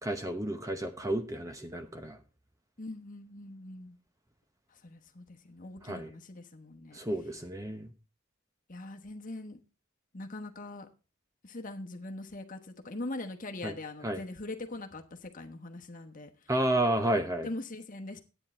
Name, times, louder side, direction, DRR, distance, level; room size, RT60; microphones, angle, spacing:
voice 1, 0.0-2.2 5.8-6.1 6.9-7.9 13.6-13.7 14.0-14.2 16.5-17.5, right 1 dB, 15° right, 0.9 m, -31 dB
voice 2, 2.8-4.0 4.7-7.0 8.7-9.6 10.1-10.9 11.4-16.3 17.4-18.2, left 2 dB, 35° left, 1.2 m, -42 dB
10.5 x 9.1 x 4.3 m
head